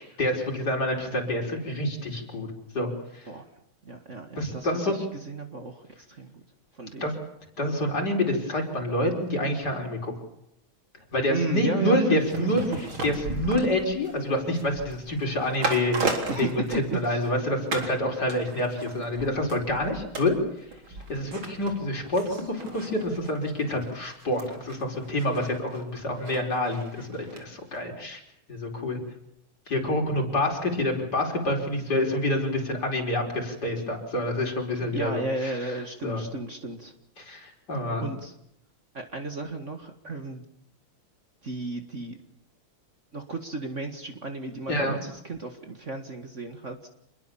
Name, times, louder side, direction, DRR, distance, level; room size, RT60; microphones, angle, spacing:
voice 1, 0.0-3.3 4.4-5.0 7.0-7.1 7.6-10.1 11.1-12.6 13.0-16.0 16.4-16.5 16.9-20.4 21.1-28.2 28.5-29.0 29.7-35.5 36.0-36.2 37.2-38.1 44.7-45.0, left 1 dB, 50° left, 2 dB, 5.4 m, -27 dB
voice 2, 3.8-6.4 6.7-7.1 11.3-13.0 16.3-17.2 34.8-36.9 38.0-38.3 38.9-40.4 41.4-42.2 43.1-46.9, right 3 dB, 35° right, 6 dB, 2.1 m, -34 dB
sound 1, 12.2-17.4 17.7-18.0 18.3-27.4 27.7-27.8, right 3 dB, 75° right, 4.6 m, -36 dB
27.0 x 21.5 x 7.3 m, 0.79 s
omnidirectional pair, 2.2 m